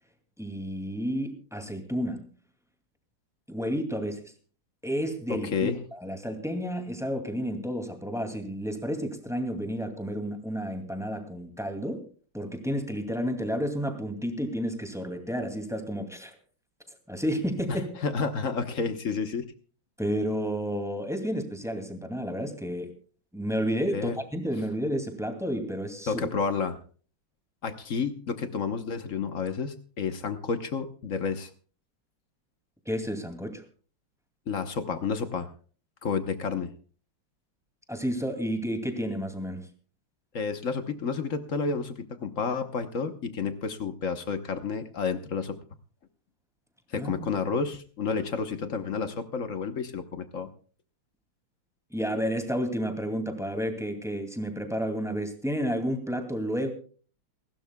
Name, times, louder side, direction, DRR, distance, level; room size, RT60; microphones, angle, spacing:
voice 1, 0.4-2.3 3.5-4.2 4.8-12.0 12.3-16.3 17.1-17.9 20.0-22.9 23.3-26.2 32.9-33.6 37.9-39.7 46.9-47.2 51.9-56.7, equal, ahead, 5 dB, 2.2 m, -31 dB
voice 2, 5.3-5.8 17.7-19.4 23.9-24.2 26.1-26.8 27.6-31.5 34.5-35.5 36.0-36.7 40.3-45.6 46.9-50.5, left 5 dB, 50° left, 8 dB, 1.1 m, -30 dB
28.0 x 12.5 x 2.3 m, 0.41 s
omnidirectional pair, 2.4 m